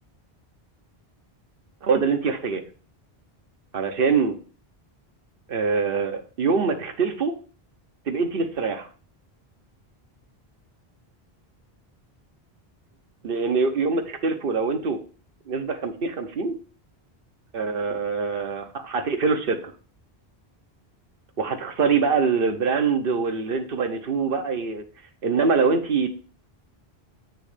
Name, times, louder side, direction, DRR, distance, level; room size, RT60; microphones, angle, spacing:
voice 1, 1.8-2.6 3.7-4.4 5.5-7.3 8.1-8.9 13.2-15.0 15.5-16.6 17.5-19.7 21.4-24.8 25.2-26.1, right 5 dB, 65° right, 5 dB, 1.1 m, -24 dB
9.2 x 3.1 x 5.0 m, 0.39 s
omnidirectional pair, 1.0 m